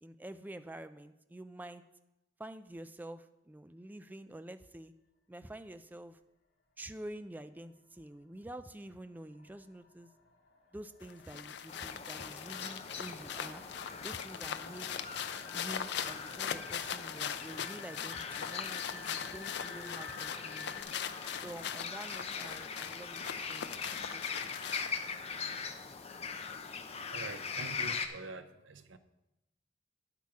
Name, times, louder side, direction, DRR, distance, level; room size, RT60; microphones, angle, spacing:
voice 1, 0.0-1.8 2.4-4.9 5.3-6.2 6.8-10.1 10.7-13.6 14.0-14.9 15.5-20.8 21.4-24.6, right 1 dB, 10° right, 0.3 m, -48 dB
sound 1, 8.0-8.1 8.4-20.8, left 5 dB, 85° left, 1.5 m, -52 dB
sound 2, 11.0-25.1, left 8 dB, 65° left, 0.5 m, -41 dB
sound 3, 11.7-28.1, left 5 dB, 35° left, 0.8 m, -42 dB
voice 2, 26.9-29.0, right 3 dB, 90° right, 0.7 m, -46 dB
10.5 x 8.3 x 4.8 m
head